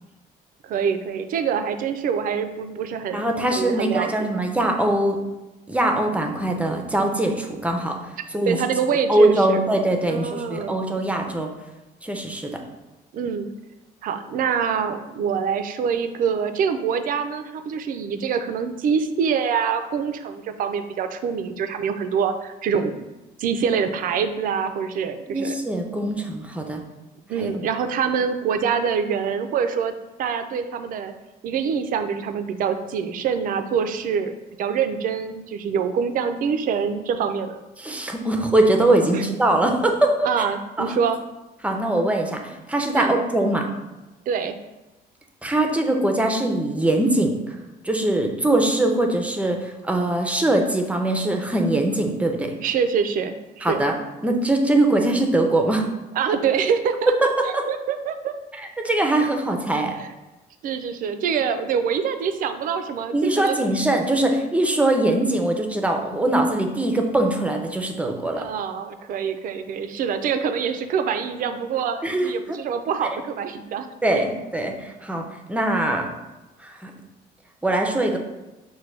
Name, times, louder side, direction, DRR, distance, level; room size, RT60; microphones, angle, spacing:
voice 1, 0.6-3.3 3.5-4.1 8.5-9.6 10.1-10.8 13.1-13.5 14.0-23.1 23.4-25.6 27.3-29.9 30.2-31.1 31.4-34.3 34.6-37.6 39.1-39.2 40.2-41.2 43.0-43.2 44.3-44.6 52.6-53.8 56.2-58.3 60.0-60.1 60.6-63.6 68.3-73.9, right 6 dB, 55° right, 9 dB, 0.4 m, -25 dB
voice 2, 3.1-5.2 5.7-7.9 8.3-8.6 9.1-11.5 12.0-12.6 25.3-26.8 27.4-27.6 37.8-40.3 40.8-41.0 41.6-43.7 45.4-47.6 47.8-52.5 53.6-54.0 54.2-55.8 57.2-57.6 58.6-59.9 63.1-68.5 72.0-72.6 74.0-76.1 76.6-76.9 77.6-78.2, right 1 dB, 10° right, 3 dB, 0.5 m, -22 dB
6.0 x 2.2 x 3.2 m, 1.0 s
cardioid pair, 110°, 17 cm